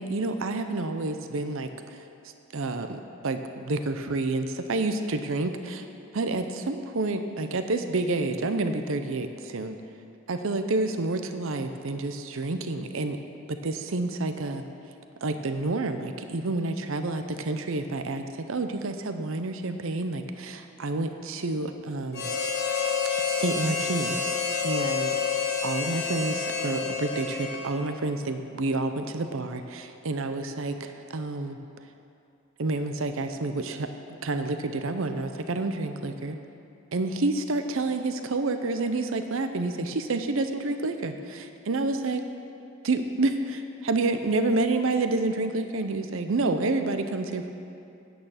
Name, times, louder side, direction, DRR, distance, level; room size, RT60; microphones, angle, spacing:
voice 1, 0.0-1.7 2.5-5.8 6.1-9.8 10.3-13.2 13.5-14.6 15.2-22.3 23.3-25.2 25.6-31.6 32.6-36.4 36.9-42.2 42.8-47.5, right 2 dB, 65° right, 8 dB, 0.6 m, -29 dB
Harmonica, 22.1-27.9, left 5 dB, 45° left, 1.4 m, -29 dB
9.3 x 8.8 x 5.7 m, 2.6 s
head